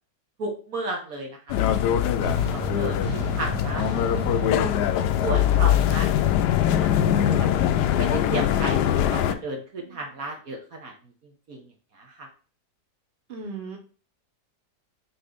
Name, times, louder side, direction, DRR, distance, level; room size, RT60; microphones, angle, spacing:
voice 1, 0.4-1.4 1.9-4.5 5.2-6.1 6.4-7.5 8.0-10.9 11.5-11.6 11.9-12.3, right 2 dB, 60° right, 1 dB, 1.6 m, -34 dB
sound 1, 1.5-9.3, left 10 dB, 85° left, 1.2 m, -22 dB
sound 2, 2.2-6.2, right 7 dB, 90° right, 1.7 m, -35 dB
voice 2, 9.8-10.1 13.3-13.8, right 4 dB, 40° right, 2 dB, 1.4 m, -38 dB
4.9 x 4.3 x 5.0 m, 0.38 s
omnidirectional pair, 1.7 m